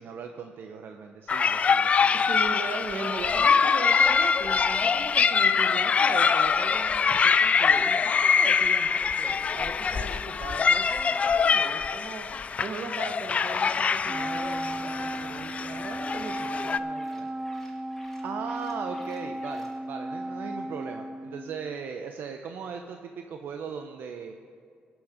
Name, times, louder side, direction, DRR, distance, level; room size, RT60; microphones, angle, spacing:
voice 1, 0.0-2.3 18.2-24.3, right 6 dB, 65° right, 5 dB, 0.6 m, -38 dB
sound 1, 1.3-16.8, left 6 dB, 35° left, 0.3 m, -24 dB
voice 2, 2.1-17.3, right 4 dB, 50° right, 7 dB, 1.0 m, -39 dB
Wind instrument woodwind instrument, 14.1-21.7, right 1 dB, 15° right, 0.5 m, -35 dB
sound 2, 14.4-19.8, left 1 dB, 10° left, 1.9 m, -54 dB
18.0 x 6.2 x 4.9 m, 2.3 s
cardioid pair, 115°, 4 cm